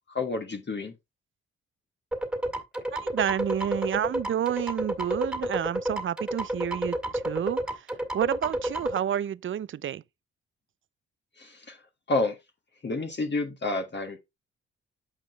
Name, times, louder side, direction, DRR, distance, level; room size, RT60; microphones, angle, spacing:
voice 1, 0.1-0.9 11.4-11.8 12.1-12.4 12.8-14.2, left 2 dB, 35° left, 1.6 m, -29 dB
sound 1, 2.1-9.0, right 1 dB, 5° right, 2.0 m, -30 dB
voice 2, 2.9-7.9 8.1-10.0, right 10 dB, 45° right, 0.5 m, -30 dB
8.9 x 5.6 x 3.4 m
hypercardioid pair, 45°, 30 cm